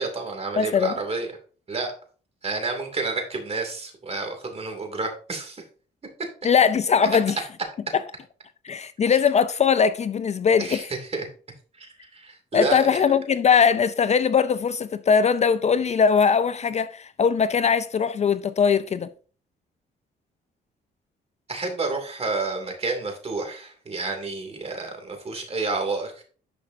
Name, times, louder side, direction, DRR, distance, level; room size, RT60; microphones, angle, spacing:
voice 1, 0.0-1.3 1.7-1.9 2.4-5.6 10.6-11.2 11.8-13.0 21.5-26.2, right 3 dB, 35° right, 2.4 m, -30 dB
voice 2, 0.6-0.9 6.4-7.4 7.9-8.0 8.6-10.8 12.5-19.1, left 6 dB, 40° left, 0.4 m, -20 dB
11.0 x 5.1 x 2.7 m
cardioid pair, 90°, 18 cm